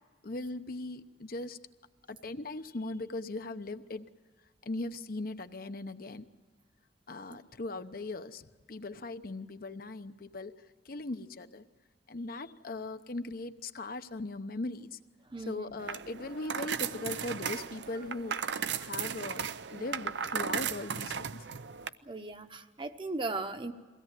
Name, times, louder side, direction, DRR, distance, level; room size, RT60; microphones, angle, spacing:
voice 1, 0.2-1.6 2.1-4.1 4.6-6.3 7.1-11.6 12.1-15.0 15.5-18.4 18.8-19.4 19.7-21.5, left 2 dB, 55° left, 9 dB, 0.8 m, -39 dB
voice 2, 15.3-15.8 22.0-23.7, right 3 dB, 30° right, 8 dB, 1.0 m, -37 dB
sound 1, 15.8-21.9, right 7 dB, 75° right, 0.6 m, -36 dB
23.0 x 17.0 x 9.1 m, 1.5 s
head